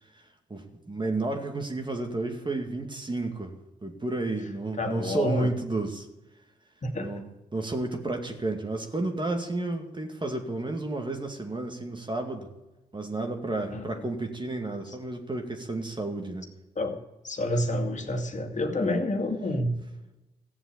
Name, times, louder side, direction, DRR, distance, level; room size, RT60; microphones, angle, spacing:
voice 1, 0.5-3.5 3.8-6.1 7.0-12.5 12.9-16.5 18.8-19.0, right 2 dB, 25° right, 3 dB, 2.3 m, -32 dB
voice 2, 4.8-5.5 6.8-7.2 13.7-14.0 14.9-15.0 16.8-17.0 17.2-19.8, left 1 dB, 40° left, 5 dB, 2.4 m, -28 dB
15.0 x 7.2 x 8.7 m, 1.0 s
supercardioid pair, 50°, 18 cm